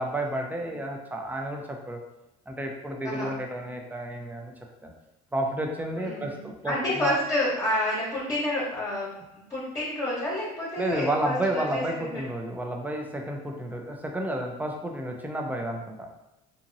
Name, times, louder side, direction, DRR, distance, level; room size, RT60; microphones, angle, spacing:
voice 1, 0.0-2.0 2.5-4.5 4.8-4.9 5.3-7.1 10.8-16.1, right 1 dB, 10° right, 1 dB, 0.5 m, -31 dB
voice 2, 5.9-9.1 9.5-12.2, left 1 dB, 20° left, -8 dB, 1.0 m, -29 dB
2.7 x 2.6 x 2.6 m, 0.91 s
supercardioid pair, 90°, 18 cm